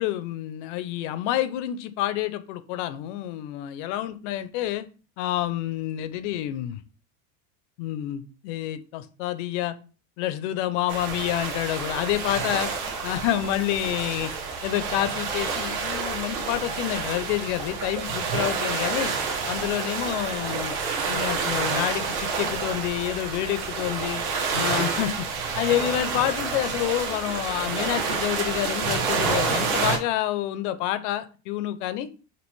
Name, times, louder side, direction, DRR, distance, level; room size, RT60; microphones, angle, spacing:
voice 1, 0.0-4.9 5.2-6.8 7.8-9.8 10.2-12.7 13.0-14.3 14.6-19.1 19.5-20.8 21.1-22.0 22.4-24.2 24.5-25.3 25.6-32.1, left 13 dB, 55° left, 0.5 m, -28 dB
sound 1, 10.9-30.0, right 5 dB, 70° right, 1.5 m, -29 dB
5.1 x 2.9 x 3.1 m
cardioid pair, 170°, 45 cm